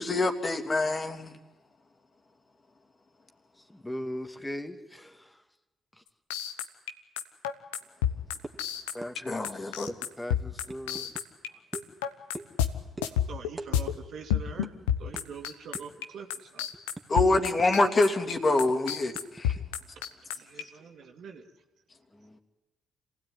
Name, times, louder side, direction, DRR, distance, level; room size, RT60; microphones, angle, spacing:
voice 1, 0.0-1.4 9.2-10.0 17.1-19.6, left 2 dB, 40° left, 2.9 m, -26 dB
voice 2, 3.7-5.4 8.9-9.8 10.2-11.1 22.1-22.4, left 1 dB, 10° left, 2.3 m, -39 dB
sound 1, 6.3-11.5 11.7-12.7 13.0-13.9 14.3-16.1 16.3-20.6, left 10 dB, 90° left, 1.1 m, -29 dB
sound 2, 8.4-8.7 9.0-9.2 9.4-9.6 9.9-10.0 10.7-11.3 11.7-11.9 12.3-12.6 13.0-13.1 13.6-13.7 14.0-14.2 14.6-14.7 15.1-15.3 15.7-16.0 16.4-17.9 18.2-18.3 18.7-19.6, right 2 dB, 20° right, 2.3 m, -42 dB
voice 3, 13.0-16.7 20.3-21.5, right 6 dB, 65° right, 2.5 m, -45 dB
26.5 x 16.5 x 9.7 m
hypercardioid pair, 50°, 0 cm